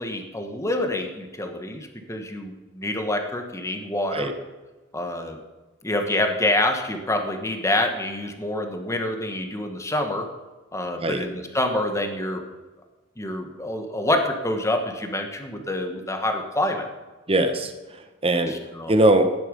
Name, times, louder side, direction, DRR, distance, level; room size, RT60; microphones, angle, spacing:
voice 1, 0.0-4.3 4.9-5.4 5.8-10.3 10.7-12.4 13.2-16.9 18.5-18.9, left 1 dB, 15° left, 5 dB, 1.5 m, -27 dB
voice 2, 17.3-18.5 18.9-19.3, right 1 dB, 30° right, 8 dB, 1.2 m, -21 dB
15.0 x 10.5 x 5.3 m, 1.2 s
head